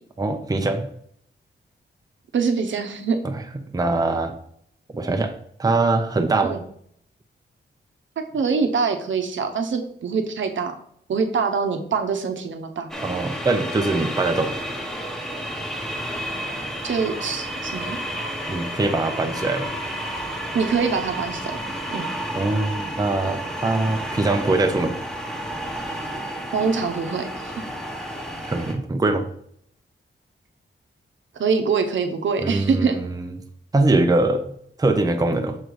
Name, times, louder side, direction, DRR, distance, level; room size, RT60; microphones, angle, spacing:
voice 1, 0.2-0.9 3.2-3.4 3.7-4.3 4.9-5.3 5.6-6.6 13.0-14.5 18.5-19.7 22.4-25.0 28.4-29.3 32.4-33.3 33.7-34.5 34.8-35.6, right 2 dB, 20° right, 5 dB, 0.6 m, -22 dB
voice 2, 2.3-3.2 6.4-6.6 8.3-10.7 11.1-12.9 16.8-18.0 20.5-21.6 21.9-22.1 26.5-27.5 31.3-33.0, right 5 dB, 70° right, 6 dB, 0.9 m, -24 dB
sound 1, 12.9-28.7, equal, ahead, 1.1 m, -31 dB
6.4 x 3.9 x 4.7 m, 0.66 s
wide cardioid pair, 130°, 20 cm